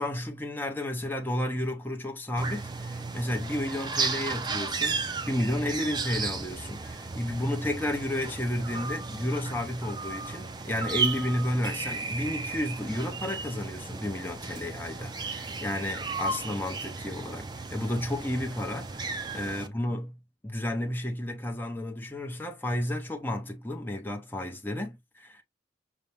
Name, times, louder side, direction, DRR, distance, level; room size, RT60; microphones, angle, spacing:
voice 1, 0.0-25.4, left 1 dB, 10° left, 0.8 m, -32 dB
sound 1, 2.4-19.7, right 4 dB, 25° right, 0.5 m, -34 dB
5.5 x 2.2 x 3.3 m
head